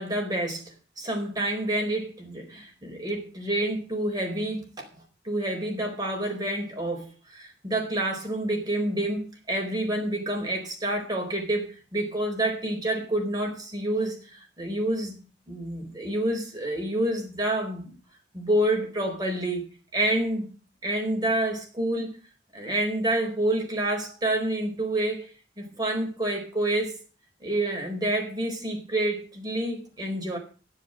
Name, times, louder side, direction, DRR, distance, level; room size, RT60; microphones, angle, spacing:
voice 1, 0.0-4.9 5.2-15.2 15.5-17.9 18.3-19.6 19.9-20.5 20.8-22.1 22.5-25.3 25.6-27.0 27.4-30.4, right 1 dB, 20° right, 4.4 m, -28 dB
10.5 x 7.8 x 7.9 m
head